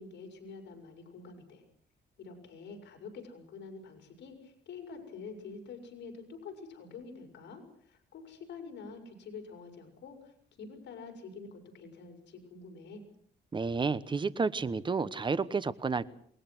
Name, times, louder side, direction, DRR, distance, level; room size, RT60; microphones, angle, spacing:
voice 1, 0.0-1.6 2.2-13.0, left 4 dB, 75° left, 5.8 m, -47 dB
voice 2, 13.5-16.1, right 4 dB, 25° right, 1.0 m, -31 dB
27.5 x 21.0 x 6.2 m
cardioid pair, 130°, 18 cm